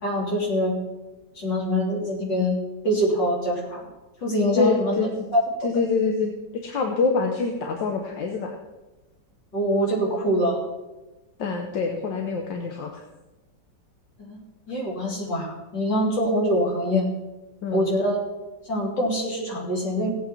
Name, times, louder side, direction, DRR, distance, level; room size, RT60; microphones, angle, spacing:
voice 1, 0.0-0.8 1.4-2.6 2.8-3.9 4.2-5.4 9.5-10.6 14.2-14.4 14.7-17.1 17.7-18.2 18.7-20.1, equal, 70° left, -3 dB, 4.0 m, -24 dB
voice 2, 4.6-5.1 5.6-6.3 6.6-8.6 11.4-13.0 17.6-17.9, left 4 dB, 90° left, 3 dB, 1.8 m, -25 dB
17.0 x 8.4 x 4.4 m, 1.1 s
omnidirectional pair, 2.0 m